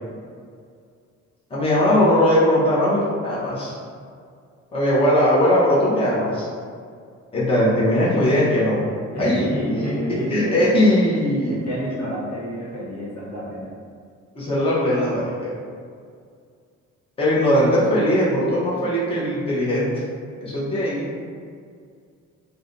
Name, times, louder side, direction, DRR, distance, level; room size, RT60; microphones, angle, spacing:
voice 1, 1.5-3.7 4.7-6.5 7.3-8.8 9.2-9.5 10.3-11.6 14.4-15.5 17.2-19.9 20.4-21.0, left 1 dB, 20° left, -8 dB, 0.7 m, -19 dB
voice 2, 9.1-10.5 11.4-13.7, equal, 65° left, -7 dB, 1.2 m, -28 dB
2.6 x 2.2 x 3.7 m, 2.2 s
cardioid pair, 110°, 29 cm